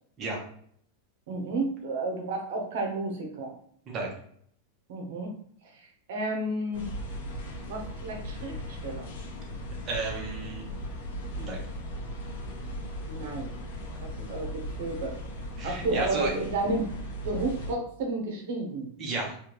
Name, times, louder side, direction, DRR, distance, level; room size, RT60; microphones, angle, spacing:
voice 1, 1.3-3.5 4.9-5.3 5.6-6.9 7.7-9.1 13.1-13.5 14.0-15.1 15.6-16.9 17.2-18.9, right 2 dB, 70° right, 2 dB, 0.8 m, -32 dB
sound 1, 6.7-17.7, equal, 80° left, 0.9 m, -37 dB
voice 2, 9.9-10.6 11.4-11.6 15.6-16.3 19.0-19.4, right 3 dB, 25° right, -2 dB, 0.9 m, -32 dB
3.5 x 2.3 x 3.0 m, 0.64 s
supercardioid pair, 155°, 0 cm